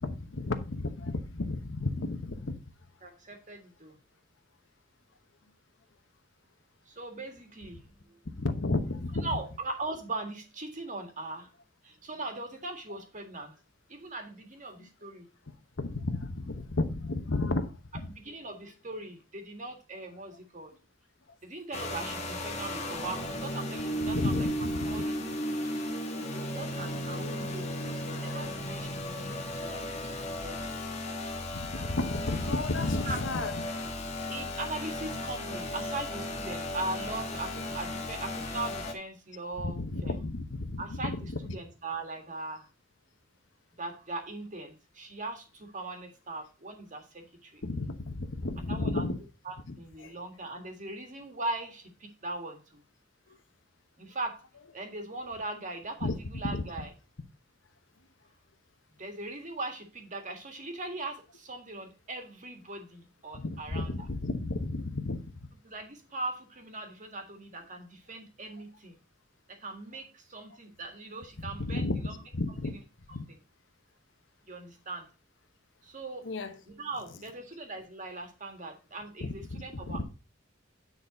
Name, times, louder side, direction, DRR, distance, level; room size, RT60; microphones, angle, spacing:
voice 1, 0.0-2.6 8.4-9.3 14.8-14.9 15.8-18.1 24.0-25.0 28.3-28.4 29.3-29.4 31.5-33.6 39.6-41.2 41.5-41.6 47.6-49.2 49.7-49.8 50.0-50.1 53.3-53.4 56.0-56.6 63.3-65.3 71.4-72.7 73.1-73.2 76.2-76.6 79.2-80.0, left 2 dB, 75° left, 1.0 m, -33 dB
voice 2, 3.0-4.0 6.9-8.2 9.2-11.5 11.8-13.5 13.9-15.3 18.0-20.7 21.4-24.5 24.8-25.2 25.6-25.9 26.4-29.9 30.4-31.0 33.0-33.2 34.3-40.2 40.8-42.7 43.8-47.6 48.6-49.0 49.5-52.8 54.0-54.4 54.7-56.9 59.0-63.9 65.6-68.9 69.5-72.1 72.7-72.8 74.5-75.1 75.8-76.3 76.7-80.0, right 2 dB, 40° right, 1.8 m, -40 dB
sound 1, 21.7-38.9, left 1 dB, 35° left, 1.4 m, -35 dB
9.5 x 4.1 x 5.1 m
head